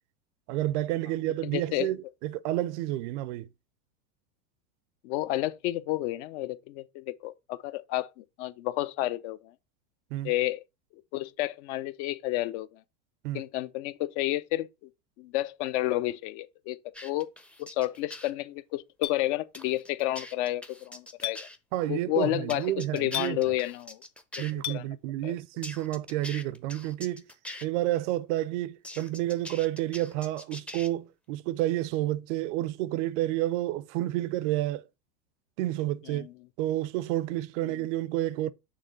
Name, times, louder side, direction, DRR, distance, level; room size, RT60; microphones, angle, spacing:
voice 1, 0.5-3.5 10.1-10.3 13.2-13.4 21.7-23.4 24.4-27.3 27.6-34.8 35.6-36.3 36.6-38.5, right 15 dB, 55° right, 0.5 m, -30 dB
voice 2, 1.4-1.9 5.0-9.5 10.2-10.6 11.1-12.8 13.3-14.7 15.2-16.8 17.0-17.3 17.6-21.5 21.9-24.0 24.7-24.9 25.2-25.4 36.1-36.3 37.7-37.8, left 16 dB, 55° left, 0.7 m, -31 dB
sound 1, 16.9-18.3 19.5-21.6 22.5-24.5 25.6-27.7 28.8-30.9, left 1 dB, 5° left, 0.5 m, -43 dB
Chink clink, 19.0-19.2 21.2-21.4 23.1-23.3 24.6-24.8, left 12 dB, 80° left, 1.1 m, -32 dB
6.6 x 3.3 x 5.1 m
supercardioid pair, 125°, 42 cm